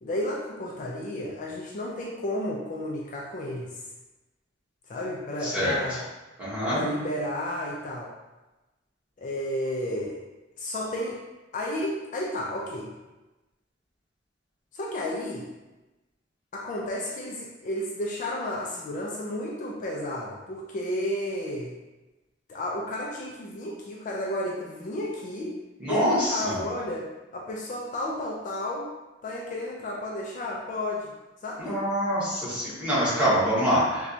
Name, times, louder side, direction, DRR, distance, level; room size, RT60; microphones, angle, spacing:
voice 1, 0.0-3.8 4.9-6.0 6.7-8.1 9.2-10.2 10.6-11.2 11.5-12.9 14.7-15.5 16.5-21.7 22.5-25.6 25.9-27.1 27.3-28.9 29.2-31.1 31.4-31.8, left 1 dB, 45° left, -3 dB, 0.4 m, -32 dB
voice 2, 5.4-5.8 6.4-6.8 25.8-26.6 31.6-34.1, equal, 5° right, -10 dB, 1.1 m, -25 dB
4.2 x 2.2 x 2.6 m, 1.1 s
head